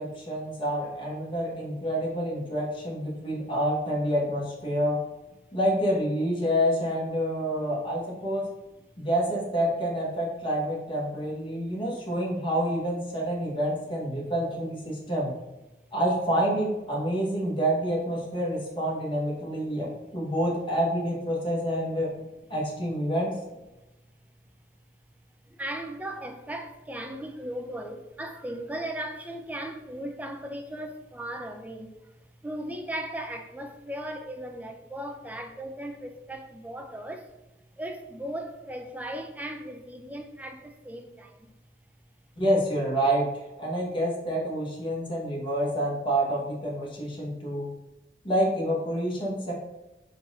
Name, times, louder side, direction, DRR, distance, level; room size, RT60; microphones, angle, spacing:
voice 1, 0.0-5.0 5.5-8.5 9.0-15.3 15.9-22.1 22.5-23.4 42.4-47.7 48.2-49.5, equal, 30° left, 1.1 m, -28 dB
voice 2, 25.5-32.1 32.4-37.3 37.8-41.5, right 1 dB, 10° right, 0.3 m, -37 dB
3.9 x 2.4 x 4.1 m
head